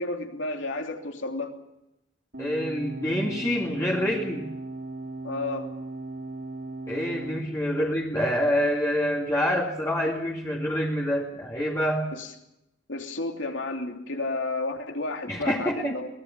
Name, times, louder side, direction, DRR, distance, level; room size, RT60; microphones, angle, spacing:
voice 1, 0.0-1.5 5.2-5.7 12.1-12.3 12.9-16.1, left 2 dB, 65° left, 3 dB, 3.1 m, -31 dB
sound 1, 2.3-7.4, right 2 dB, 55° right, 3.6 m, -37 dB
voice 2, 2.4-4.5 6.9-12.1 15.3-16.0, equal, 15° left, -3 dB, 2.3 m, -26 dB
24.0 x 20.0 x 7.5 m, 0.86 s
head